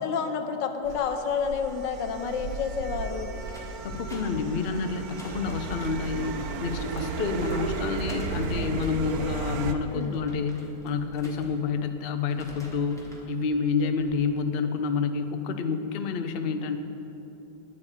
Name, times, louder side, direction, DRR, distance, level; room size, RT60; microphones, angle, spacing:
voice 1, 0.0-3.3 9.9-10.2, left 6 dB, 90° left, 7 dB, 1.6 m, -29 dB
sound 1, 0.8-9.7, right 4 dB, 65° right, 1.1 m, -34 dB
sound 2, 3.5-5.9 6.6-7.6 8.0-9.2 9.7-11.9 12.2-13.3 13.8-14.2, left 2 dB, ahead, 1.5 m, -45 dB
voice 2, 3.8-16.8, left 5 dB, 60° left, 7 dB, 0.6 m, -29 dB
10.5 x 8.1 x 8.9 m, 3.0 s
omnidirectional pair, 1.9 m